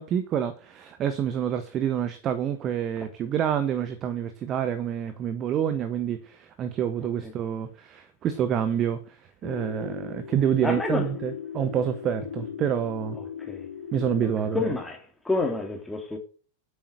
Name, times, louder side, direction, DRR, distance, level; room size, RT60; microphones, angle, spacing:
voice 1, 0.0-9.2 9.4-13.2 13.9-14.7, right 9 dB, 30° right, 1.4 m, -27 dB
sound 1, 9.4-14.7, left 8 dB, 60° left, 1.9 m, -38 dB
voice 2, 10.6-11.1 13.5-13.6 14.5-15.0 15.2-16.2, left 3 dB, 5° left, 3.4 m, -28 dB
10.0 x 8.4 x 6.5 m
figure-of-eight pair, 90°, 0 cm